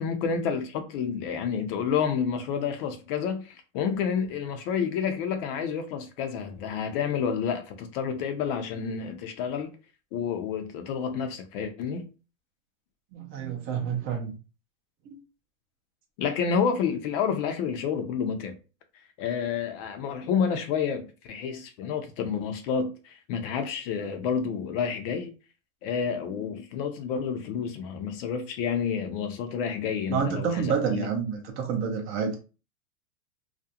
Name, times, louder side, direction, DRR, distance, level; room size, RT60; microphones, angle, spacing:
voice 1, 0.0-9.7 10.1-12.0 16.2-18.5 19.2-25.3 25.8-31.1, left 6 dB, 45° left, 0.5 m, -29 dB
voice 2, 13.1-14.4 15.1-15.2 30.1-32.4, right 6 dB, 30° right, 0.6 m, -28 dB
2.4 x 2.1 x 2.7 m
hypercardioid pair, 130°, 41 cm